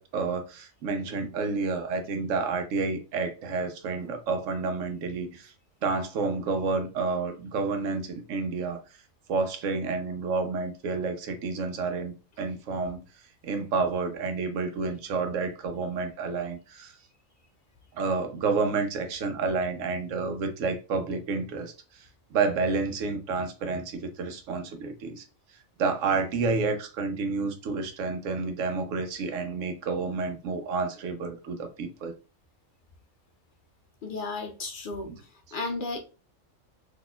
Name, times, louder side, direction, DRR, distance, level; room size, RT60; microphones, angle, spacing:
voice 1, 0.0-5.5 5.8-8.8 9.3-13.0 13.4-16.9 18.0-21.7 22.3-25.2 25.8-32.1 35.1-35.2, right 4 dB, 70° right, 1.0 m, -29 dB
voice 2, 34.0-35.1 35.5-36.0, left 3 dB, 65° left, 0.5 m, -33 dB
4.0 x 2.9 x 2.2 m
omnidirectional pair, 1.4 m